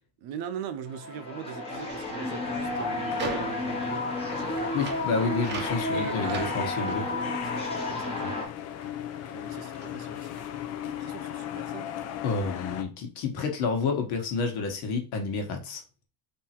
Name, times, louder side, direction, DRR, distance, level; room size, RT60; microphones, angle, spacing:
voice 1, 0.2-4.0 4.3-4.7 5.9-8.3 9.3-10.4 10.8-11.9, right 9 dB, 60° right, 0.7 m, -40 dB
sound 1, 0.9-8.5, left 2 dB, 15° left, 1.0 m, -32 dB
sound 2, 1.5-9.0 9.3-10.8, right 4 dB, 25° right, 0.7 m, -42 dB
sound 3, 2.2-12.8, left 10 dB, 40° left, 0.5 m, -38 dB
voice 2, 4.7-7.0 8.2-8.3 12.2-15.8, left 4 dB, 65° left, 1.4 m, -29 dB
3.7 x 2.8 x 4.3 m
cardioid pair, 165°, 41 cm